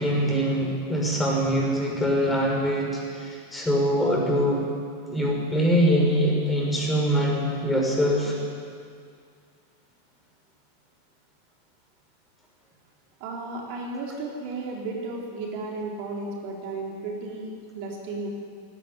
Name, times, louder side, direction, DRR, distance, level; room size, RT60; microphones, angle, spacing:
voice 1, 0.0-4.6 5.1-8.3, equal, 10° left, -1 dB, 6.4 m, -23 dB
voice 2, 13.2-18.3, right 3 dB, 50° right, -1 dB, 4.0 m, -34 dB
18.0 x 18.0 x 9.9 m, 2.2 s
figure-of-eight pair, 90°, 0 cm